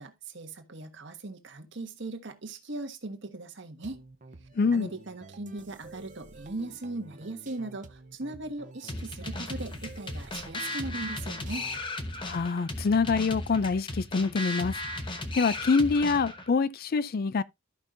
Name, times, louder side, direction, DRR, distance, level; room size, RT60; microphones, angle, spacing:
voice 1, 0.0-4.0 4.7-11.7, right 2 dB, 60° right, 1.4 m, -39 dB
sound 1, 3.8-12.0, right 3 dB, 40° right, 0.8 m, -50 dB
voice 2, 4.6-4.9 12.2-14.7 15.3-17.4, left 4 dB, 45° left, 0.4 m, -25 dB
sound 2, 8.9-16.5, left 2 dB, 25° left, 1.0 m, -36 dB
13.5 x 5.4 x 2.6 m
head